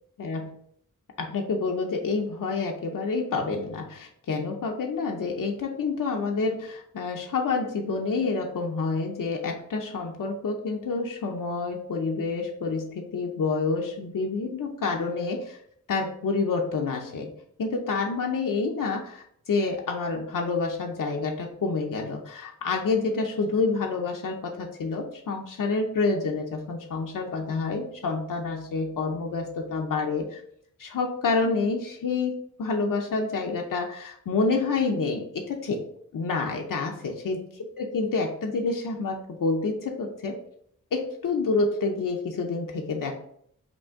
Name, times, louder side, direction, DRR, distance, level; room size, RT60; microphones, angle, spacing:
voice 1, 0.2-0.5 1.2-15.6 15.9-17.3 17.6-30.4 30.8-35.9 36.1-37.4 37.8-40.4 40.9-43.1, left 4 dB, 70° left, 2 dB, 0.7 m, -28 dB
5.2 x 2.7 x 3.6 m, 0.67 s
wide cardioid pair, 140°, 33 cm